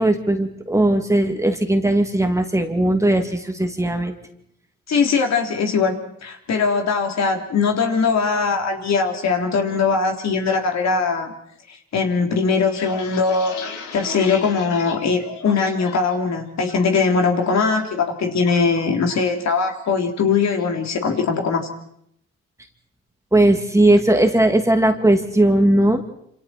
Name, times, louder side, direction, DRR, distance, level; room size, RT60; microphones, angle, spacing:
voice 1, 0.0-4.1 23.3-26.0, right 1 dB, 10° right, 4 dB, 2.7 m, -18 dB
voice 2, 4.9-11.3 11.7-13.5 13.9-21.7, left 5 dB, 60° left, 3 dB, 3.7 m, -21 dB
sound 1, 12.7-16.1 16.5-17.0 17.4-17.8 18.1-19.3 19.7-19.9 20.2-20.7, left 5 dB, 80° left, 3.8 m, -36 dB
27.5 x 27.0 x 4.5 m, 0.72 s
cardioid pair, 90°, 30 cm